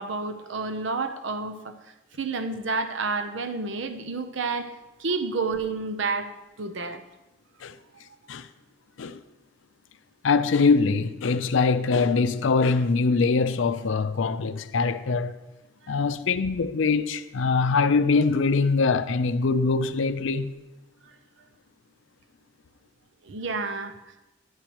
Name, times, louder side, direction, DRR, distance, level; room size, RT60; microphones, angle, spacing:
voice 1, 0.0-1.8 2.2-4.7 5.0-6.3 6.6-7.0 21.0-21.1 23.2-24.0, right 4 dB, 70° right, 0.6 m, -30 dB
voice 2, 10.2-15.4 15.9-20.5, left 4 dB, 75° left, 0.5 m, -23 dB
11.0 x 10.0 x 3.0 m
head